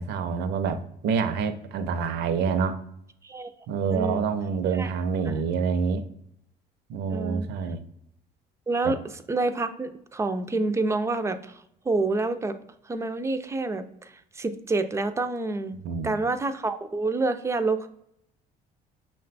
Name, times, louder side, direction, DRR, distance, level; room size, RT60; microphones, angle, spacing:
voice 1, 0.0-2.8 3.7-6.0 6.9-7.8 8.8-8.9 15.7-16.1, right 5 dB, 75° right, 10 dB, 0.5 m, -27 dB
voice 2, 7.1-7.5 8.7-9.0 9.3-12.6 12.9-15.8 16.0-17.9, right 3 dB, 15° right, 9 dB, 0.3 m, -28 dB
5.9 x 2.2 x 3.9 m, 0.74 s
cardioid pair, 110°, 17 cm